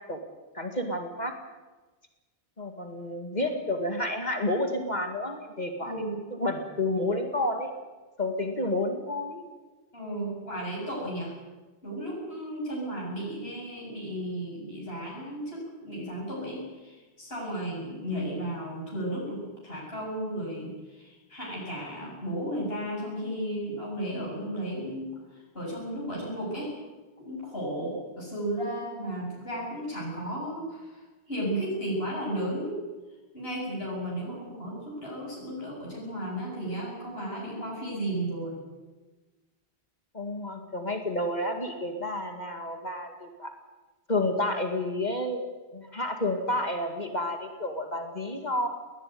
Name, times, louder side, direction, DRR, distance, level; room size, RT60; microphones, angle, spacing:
voice 1, 0.5-1.3 2.6-5.9 6.3-7.7 8.2-9.5 40.1-43.5 44.1-45.5 45.7-48.7, left 1 dB, 40° left, 4 dB, 2.3 m, -30 dB
voice 2, 5.8-6.2 9.9-11.3 11.8-26.7 27.2-32.8 33.3-38.6, right 1 dB, 65° left, -4 dB, 8.2 m, -34 dB
20.0 x 19.5 x 9.5 m, 1.2 s
omnidirectional pair, 1.1 m